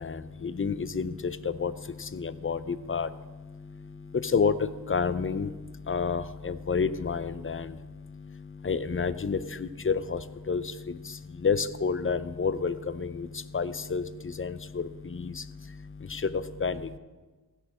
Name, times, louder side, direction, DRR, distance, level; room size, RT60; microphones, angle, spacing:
voice 1, 0.4-1.1 1.6-1.7 2.2-3.1 4.3-4.5 4.9-5.5 5.9-7.6 8.7-9.4 9.9-10.2 10.5-10.6 11.4-13.3 13.5-14.0 14.4-14.5 16.6-16.8, left 5 dB, 30° left, 14 dB, 0.6 m, -28 dB
16.5 x 6.4 x 4.9 m, 1.3 s
cardioid pair, 45°, 40 cm